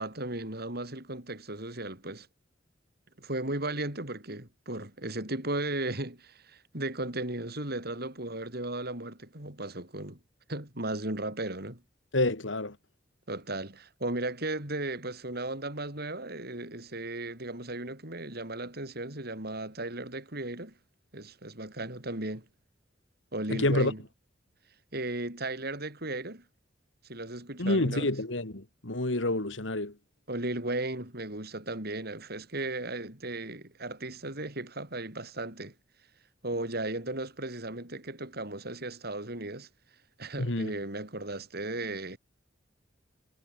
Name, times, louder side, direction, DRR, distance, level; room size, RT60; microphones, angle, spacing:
voice 1, 0.0-2.3 3.2-10.2 10.5-11.8 13.3-20.7 21.1-22.5 23.3-24.0 24.9-26.4 27.0-28.1 30.3-35.7 36.4-39.7 40.2-42.2, right 2 dB, 55° right, 7.3 m, -36 dB
voice 2, 12.1-12.8 23.5-23.9 27.6-29.9 40.4-40.7, left 2 dB, 85° left, 2.7 m, -28 dB
head